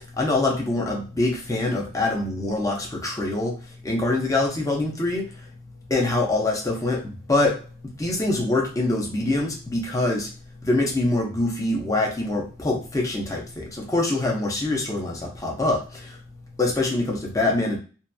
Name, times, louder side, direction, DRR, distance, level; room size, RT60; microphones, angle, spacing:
voice 1, 0.2-3.5 3.8-5.3 5.9-7.6 8.0-10.3 10.6-15.8 16.6-17.8, left 2 dB, 15° left, 0 dB, 0.6 m, -24 dB
2.8 x 2.4 x 2.2 m, 0.36 s
head